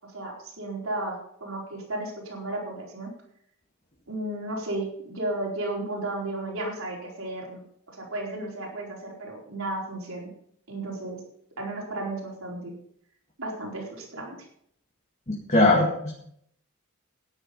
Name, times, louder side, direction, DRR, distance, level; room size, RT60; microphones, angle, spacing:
voice 1, 0.0-3.1 4.1-7.6 7.9-10.3 10.7-11.2 11.6-12.7 13.4-14.4, right 2 dB, 80° right, -2 dB, 4.6 m, -34 dB
voice 2, 15.3-16.1, left 2 dB, 35° left, -2 dB, 2.0 m, -21 dB
12.5 x 10.5 x 5.4 m, 0.69 s
head